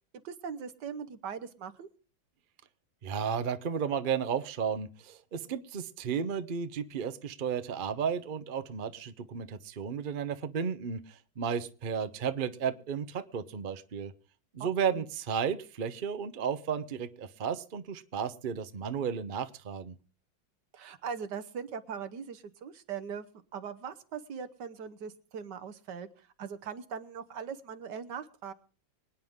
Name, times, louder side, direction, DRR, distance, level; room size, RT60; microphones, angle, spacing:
voice 1, 0.2-1.9 14.6-15.0 20.7-23.3 23.5-28.5, right 7 dB, 65° right, 10 dB, 1.6 m, -40 dB
voice 2, 3.0-14.1 14.5-20.0, right 7 dB, 45° right, 11 dB, 0.6 m, -33 dB
24.5 x 9.5 x 3.6 m, 0.39 s
omnidirectional pair, 2.1 m